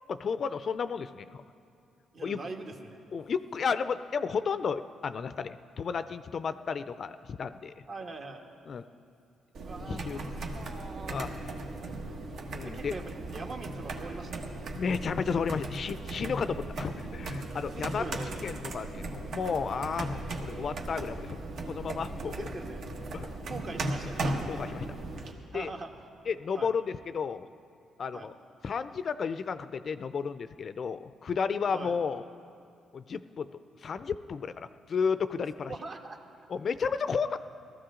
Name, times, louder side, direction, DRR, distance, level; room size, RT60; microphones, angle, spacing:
voice 1, 0.1-1.4 2.2-2.4 3.1-7.9 8.7-8.9 9.9-10.2 11.1-11.3 12.5-12.9 14.8-18.0 18.4-21.4 21.6-22.5 23.1-23.3 24.5-24.9 25.5-25.7 26.3-27.5 28.0-28.3 28.6-32.2 32.9-33.5 33.8-35.7 36.5-37.4, left 6 dB, 50° left, 13 dB, 0.4 m, -32 dB
voice 2, 2.1-3.0 7.9-8.5 9.6-11.2 12.6-14.5 17.7-18.5 22.2-22.9 23.5-24.6 25.5-25.9 26.5-26.7 28.1-28.3 31.7-31.9 35.7-36.2, right 3 dB, 50° right, 3 dB, 1.4 m, -42 dB
sound 1, 9.5-25.3, right 2 dB, 65° right, 1.3 m, -37 dB
18.0 x 14.0 x 3.8 m, 2.5 s
cardioid pair, 90°, 0 cm